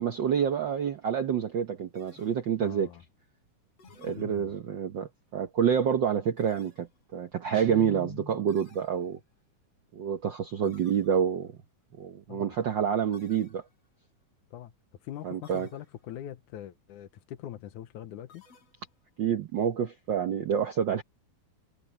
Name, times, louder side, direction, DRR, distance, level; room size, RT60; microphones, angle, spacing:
voice 1, 0.0-2.9 4.0-9.2 9.9-11.5 12.0-13.6 15.2-15.7 19.2-21.0, right 8 dB, 85° right, 1.0 m, -28 dB
sound 1, 2.0-2.8 3.8-4.8 6.4-7.2 8.5-9.5 10.6-11.5 13.1-14.1 15.4-16.2 18.3-19.2, left 4 dB, 50° left, 6.2 m, -59 dB
voice 2, 2.6-3.0 4.1-4.5 10.6-10.7 12.3-12.6 14.5-14.7 15.0-18.4, left 12 dB, 80° left, 2.5 m, -43 dB
Guitar, 7.5-8.7, equal, 55° right, 4.6 m, -43 dB
omnidirectional pair, 3.5 m